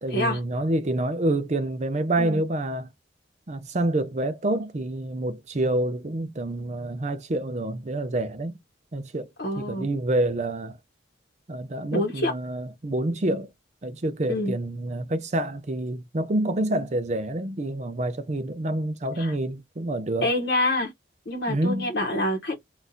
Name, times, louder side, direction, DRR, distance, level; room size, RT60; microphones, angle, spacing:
voice 1, 0.0-2.9 3.5-8.6 8.9-9.3 9.6-10.8 11.5-13.5 13.8-20.3 21.5-21.9, right 1 dB, 40° right, 0.5 m, -27 dB
voice 2, 9.4-9.9 11.9-12.3 14.3-14.5 19.2-19.3 20.2-20.9 21.3-22.6, left 1 dB, 65° left, 0.9 m, -26 dB
3.8 x 2.4 x 2.7 m
head